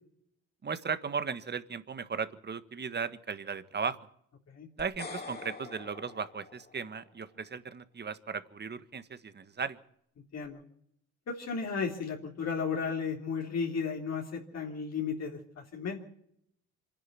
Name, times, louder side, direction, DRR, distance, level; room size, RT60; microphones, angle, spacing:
voice 1, 0.6-4.0 4.8-9.8, right 5 dB, 35° right, 12 dB, 1.6 m, -36 dB
sound 1, 4.8-7.1, left 4 dB, 30° left, 3.3 m, -45 dB
voice 2, 11.3-16.0, left 5 dB, 60° left, 0 dB, 3.5 m, -34 dB
25.5 x 10.5 x 9.6 m, 0.69 s
cardioid pair, 90°, 30 cm